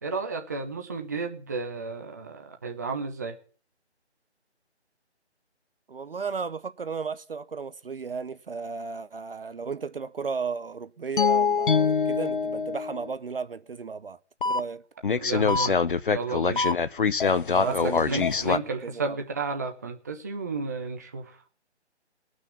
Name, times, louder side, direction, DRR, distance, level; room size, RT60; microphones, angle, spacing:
voice 1, 0.0-3.4 15.1-16.6 17.5-21.4, right 4 dB, 15° right, 0.8 m, -33 dB
voice 2, 5.9-14.2 14.4-14.8 17.5-19.2, right 5 dB, 55° right, 0.8 m, -34 dB
sound 1, 11.2-13.1 14.4-14.6 15.0-18.6, left 5 dB, 50° left, 0.7 m, -24 dB
18.0 x 6.3 x 8.2 m
figure-of-eight pair, 165°, 34 cm